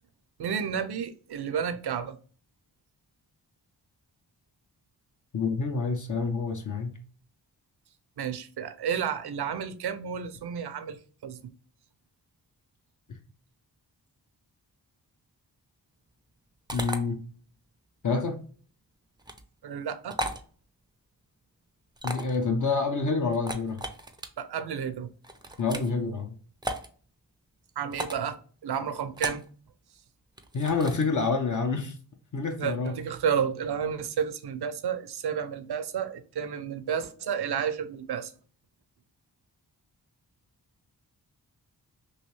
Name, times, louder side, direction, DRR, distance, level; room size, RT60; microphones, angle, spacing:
voice 1, 0.4-2.2 8.2-11.4 19.6-20.2 24.4-25.1 27.8-29.4 32.6-38.3, right 7 dB, 65° right, 0.6 m, -31 dB
voice 2, 5.3-7.0 13.1-13.2 16.7-17.2 18.0-18.4 22.0-23.8 25.6-26.4 30.5-31.9 32.3-33.0, left 4 dB, 45° left, 0.6 m, -28 dB
sound 1, 16.7-17.0 19.2-19.4 20.1-20.4 22.0-22.4 23.3-24.3 25.2-25.9 26.6-26.9 27.9-28.3 29.2-29.5 30.4-31.0, right 1 dB, 10° right, 0.5 m, -35 dB
3.1 x 2.7 x 3.0 m
cardioid pair, 50°, 42 cm